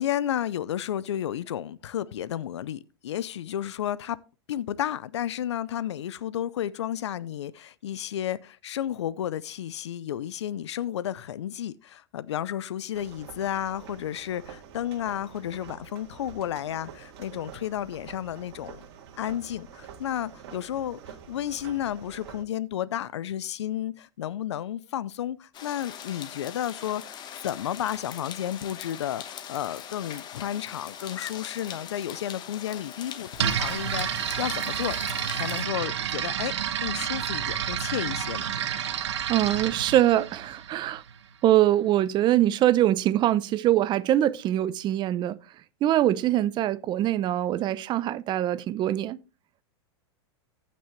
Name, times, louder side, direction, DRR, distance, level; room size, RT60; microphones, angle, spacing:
voice 1, 0.0-4.2 4.5-18.8 19.2-35.0 35.3-38.5, left 11 dB, 85° left, 0.6 m, -32 dB
sound 1, 12.9-22.4, right 8 dB, 65° right, 2.0 m, -47 dB
sound 2, 25.5-35.6, left 9 dB, 30° left, 1.3 m, -41 dB
sound 3, 33.4-41.2, right 9 dB, 80° right, 1.2 m, -30 dB
voice 2, 38.9-41.0 41.4-45.4 45.8-49.2, right 13 dB, 30° right, 0.6 m, -23 dB
15.0 x 6.2 x 3.2 m
hypercardioid pair, 120°, 14 cm